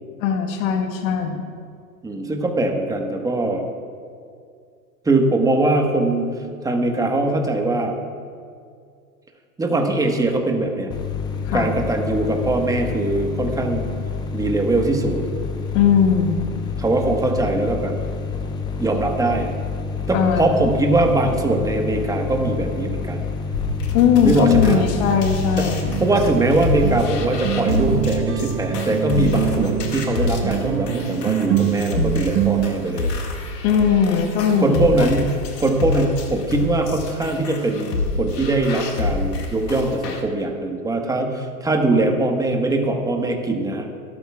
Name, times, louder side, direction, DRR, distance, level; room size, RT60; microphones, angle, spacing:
voice 1, 0.2-1.4 11.4-11.7 15.7-16.5 20.1-20.6 23.9-25.9 33.6-35.1, left 7 dB, 50° left, 4 dB, 1.6 m, -19 dB
voice 2, 2.0-3.6 5.0-6.3 6.6-7.9 9.6-10.9 11.5-13.9 14.3-15.3 16.8-18.0 18.8-19.5 20.1-23.2 24.2-24.8 25.6-33.1 34.6-35.3 35.6-43.9, right 2 dB, 5° right, 2 dB, 1.4 m, -21 dB
sound 1, 10.9-27.4, left 4 dB, 10° left, 0.3 m, -28 dB
sound 2, 23.5-40.2, left 3 dB, 80° left, 2.2 m, -27 dB
sound 3, 25.9-32.8, right 11 dB, 25° right, 0.9 m, -25 dB
25.5 x 13.0 x 2.4 m, 2.2 s
hypercardioid pair, 115°, 49 cm